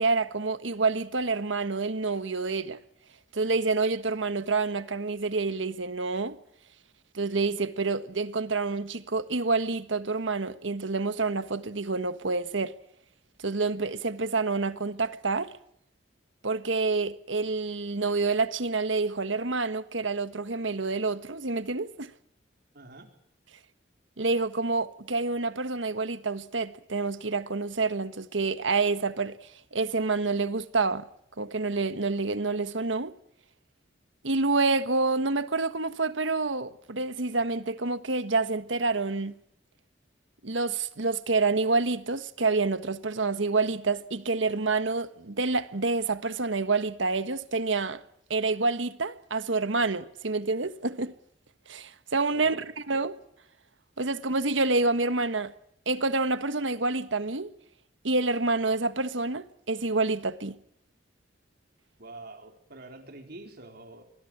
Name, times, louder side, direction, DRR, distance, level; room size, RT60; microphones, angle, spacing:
voice 1, 0.0-2.8 3.3-6.4 7.1-12.7 13.4-15.5 16.4-22.1 24.2-29.4 29.7-31.1 31.4-33.1 34.2-39.4 40.4-48.0 48.3-51.1 51.7-53.1 54.0-55.5 55.9-57.5 58.0-60.6, right 3 dB, 90° right, 1.5 m, -28 dB
voice 2, 22.7-23.1 52.3-52.7 62.0-64.0, right 2 dB, 55° right, 4.4 m, -46 dB
25.0 x 20.5 x 8.8 m
head